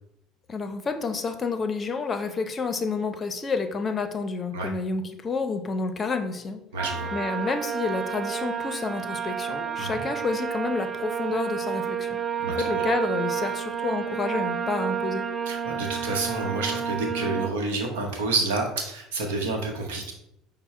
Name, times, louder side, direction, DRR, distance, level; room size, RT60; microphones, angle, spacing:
voice 1, 0.5-6.6 7.1-12.2 12.6-15.3, left 4 dB, 30° left, 8 dB, 0.6 m, -29 dB
voice 2, 6.7-7.1 9.8-10.0 12.4-12.7 15.5-20.1, right 3 dB, 85° right, 3 dB, 0.8 m, -29 dB
sound 1, 6.8-17.5, right 7 dB, 30° right, 0.4 m, -30 dB
5.5 x 2.1 x 4.2 m, 0.82 s
hypercardioid pair, 80°, 0 cm